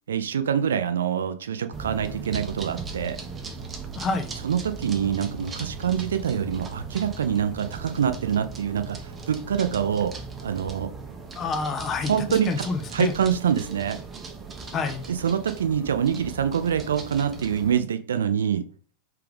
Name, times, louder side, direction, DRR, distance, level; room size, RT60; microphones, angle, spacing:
voice 1, 0.1-3.2 4.4-10.1 10.4-10.9 12.1-12.5 12.9-14.0 15.1-18.6, right 8 dB, 65° right, 0.4 m, -25 dB
sound 1, 1.7-17.8, right 4 dB, 20° right, 0.7 m, -38 dB
voice 2, 4.0-4.3 11.4-13.1 14.7-15.1, left 4 dB, 30° left, 0.6 m, -28 dB
3.4 x 3.3 x 3.3 m
figure-of-eight pair, 90°, 0 cm